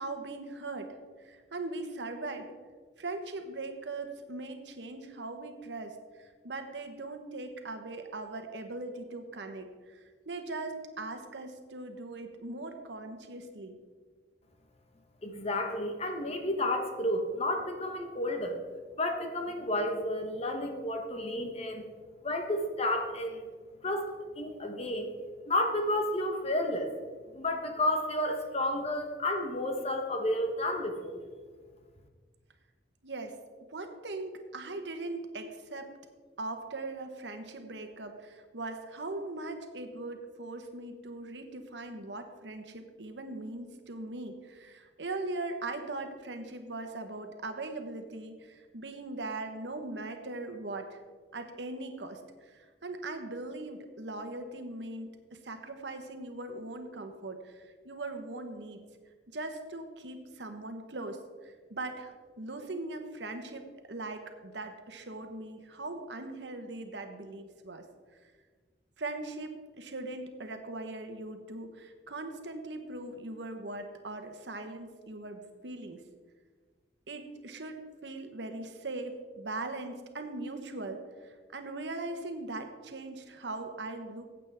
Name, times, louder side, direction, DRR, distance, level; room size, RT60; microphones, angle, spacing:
voice 1, 0.0-2.5 3.0-13.8 33.0-33.4 33.7-35.9 36.4-51.0 51.3-58.8 59.3-67.9 69.0-76.0 77.1-84.2, right 2 dB, 90° right, 6 dB, 1.2 m, -40 dB
voice 2, 15.2-18.6 19.0-21.9 22.2-23.5 23.8-24.1 24.3-25.1 25.5-26.9 27.3-31.2, left 1 dB, 35° left, 4 dB, 1.1 m, -31 dB
15.0 x 8.3 x 3.6 m, 1.5 s
head